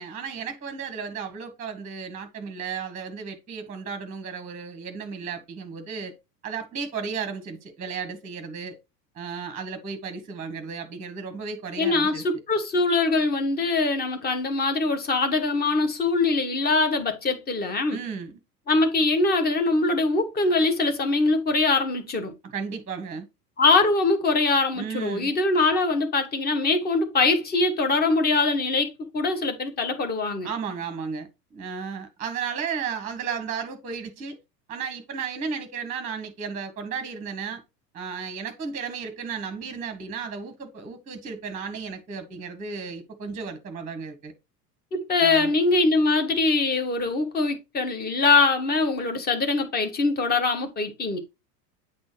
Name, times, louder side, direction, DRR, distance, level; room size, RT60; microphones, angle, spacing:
voice 1, 0.0-6.1 6.4-8.8 9.1-12.2 17.9-18.4 22.4-23.2 24.7-25.4 30.4-34.4 34.7-37.6 37.9-44.3 45.2-45.5, right 6 dB, 15° right, 1.1 m, -34 dB
voice 2, 11.8-18.0 18.7-22.3 23.6-30.5 44.9-51.2, left 3 dB, 20° left, 1.2 m, -23 dB
8.8 x 4.3 x 3.0 m
figure-of-eight pair, 80°, 49 cm